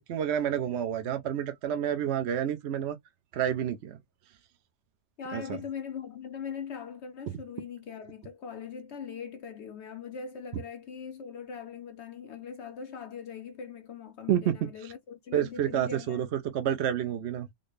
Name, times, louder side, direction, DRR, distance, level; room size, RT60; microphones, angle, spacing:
voice 1, 0.0-3.0 3.3-4.0 5.3-5.6 14.3-14.9 15.3-16.3 16.5-17.5, right 10 dB, 65° right, 0.7 m, -29 dB
voice 2, 5.2-16.3, left 6 dB, 65° left, 0.7 m, -41 dB
4.0 x 2.1 x 3.2 m
omnidirectional pair, 1.5 m